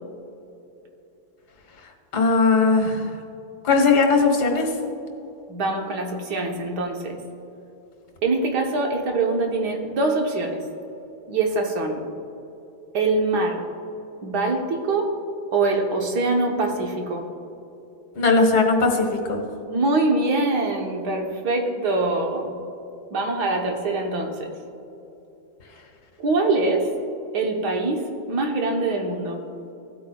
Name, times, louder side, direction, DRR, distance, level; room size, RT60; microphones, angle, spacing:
voice 1, 2.1-3.0 3.6-4.7 18.2-19.4, left 4 dB, 65° left, 2 dB, 1.8 m, -18 dB
voice 2, 5.5-7.2 8.2-10.6 11.3-12.0 12.9-13.6 14.2-15.1 15.5-17.2 19.7-22.5 23.1-24.5 26.2-26.9 27.3-29.4, right 3 dB, 65° right, 1 dB, 1.7 m, -24 dB
16.0 x 8.7 x 2.3 m, 2.9 s
omnidirectional pair, 1.9 m